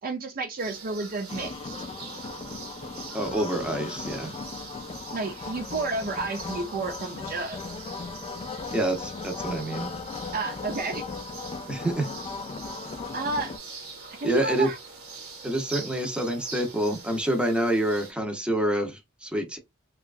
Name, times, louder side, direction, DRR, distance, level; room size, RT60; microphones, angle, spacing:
voice 1, 0.0-1.7 5.1-7.6 10.3-11.0 13.1-13.5 14.2-14.8, right 3 dB, 45° right, 0.5 m, -31 dB
sound 1, 0.6-18.1, right 4 dB, 75° right, 1.0 m, -43 dB
sound 2, 1.3-13.6, left 4 dB, 25° left, 0.3 m, -37 dB
voice 2, 3.1-4.3 8.7-9.9 11.7-12.1 14.2-14.7 15.4-19.6, right 1 dB, 5° right, 0.7 m, -27 dB
2.8 x 2.3 x 2.4 m
head